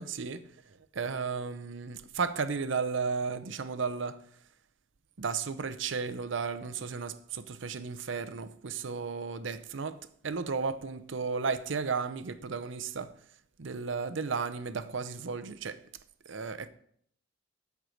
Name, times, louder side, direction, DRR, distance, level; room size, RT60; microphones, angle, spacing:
voice 1, 0.0-4.4 5.2-13.2 13.6-15.8 16.2-16.7, right 5 dB, 65° right, 0.6 m, -34 dB
13.5 x 4.7 x 6.4 m
head